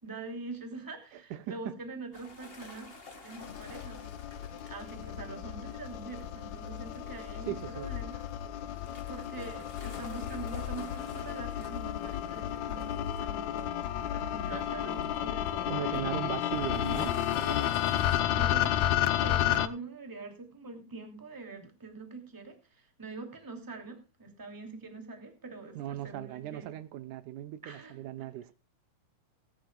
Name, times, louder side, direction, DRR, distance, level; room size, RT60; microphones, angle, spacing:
voice 1, 0.0-2.9 3.2-4.0 4.6-8.2 9.1-13.7 14.1-16.1 17.4-26.7 27.6-28.0, right 3 dB, 5° right, 2.4 m, -44 dB
voice 2, 1.1-1.8 7.4-7.9 15.7-17.2 25.8-28.5, right 12 dB, 75° right, 2.2 m, -38 dB
sound 1, 2.1-18.2, left 3 dB, 25° left, 1.5 m, -51 dB
sound 2, 3.4-19.7, left 12 dB, 70° left, 1.8 m, -32 dB
19.5 x 11.5 x 2.4 m
omnidirectional pair, 3.8 m